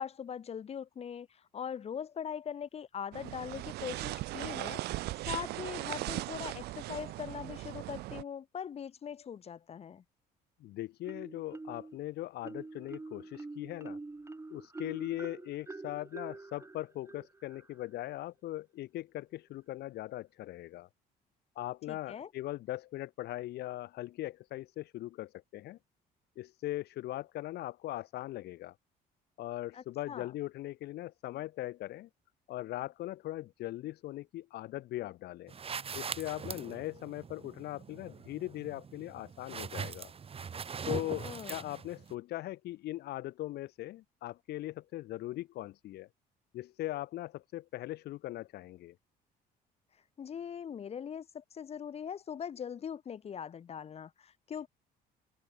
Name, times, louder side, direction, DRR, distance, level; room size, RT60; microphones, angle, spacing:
voice 1, 0.0-4.8 5.2-10.0 21.9-22.3 29.7-30.3 41.2-41.8 50.2-54.7, left 8 dB, 35° left, 0.9 m, -41 dB
sound 1, 3.1-8.2, right 18 dB, 75° right, 0.5 m, -38 dB
voice 2, 10.6-14.0 14.5-20.9 21.5-25.8 26.4-28.7 29.4-32.1 32.5-35.5 35.9-40.1 40.9-46.1 46.5-48.9, left 15 dB, 75° left, 3.0 m, -40 dB
Marimba xylophone, 11.0-12.0 12.4-17.9, right 3 dB, 15° right, 5.9 m, -46 dB
sound 2, 35.5-42.1, right 6 dB, 35° right, 2.8 m, -42 dB
cardioid pair, 110°, 17 cm